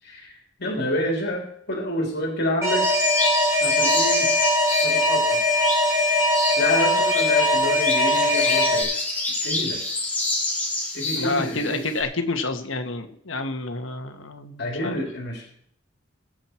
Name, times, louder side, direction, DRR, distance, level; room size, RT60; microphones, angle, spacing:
voice 1, 0.0-2.8 3.6-4.3 4.8-5.4 6.6-9.0 9.4-9.8 10.9-11.8 14.6-15.4, left 1 dB, 60° left, 0 dB, 3.2 m, -28 dB
Alarm, 2.6-8.8, left 1 dB, 15° right, 6.2 m, -21 dB
sound 1, 2.8-12.0, left 2 dB, 10° left, 3.2 m, -28 dB
voice 2, 11.1-14.9, left 3 dB, 75° left, 6 dB, 1.6 m, -29 dB
21.0 x 7.9 x 4.5 m, 0.69 s
head